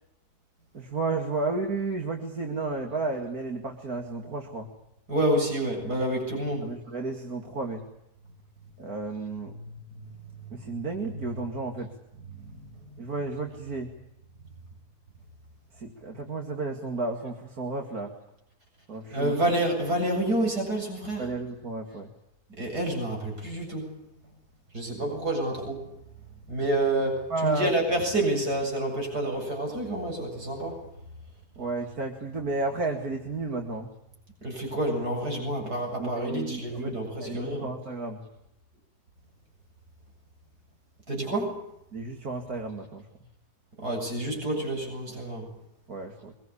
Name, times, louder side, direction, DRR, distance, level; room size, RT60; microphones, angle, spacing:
voice 1, 0.7-4.7 6.6-7.8 8.8-9.6 10.5-11.9 13.0-13.9 15.7-18.1 18.9-19.4 21.2-22.1 25.0-25.1 27.3-27.7 31.6-33.9 36.0-38.2 41.9-43.1 45.9-46.3, right 3 dB, 70° right, 2 dB, 2.8 m, -32 dB
voice 2, 5.1-6.7 19.1-21.2 22.6-23.9 24.7-25.8 26.5-30.8 34.4-37.7 41.1-41.6 43.8-45.4, right 1 dB, 85° right, 1 dB, 8.4 m, -28 dB
25.0 x 22.0 x 8.5 m, 0.82 s
omnidirectional pair, 1.6 m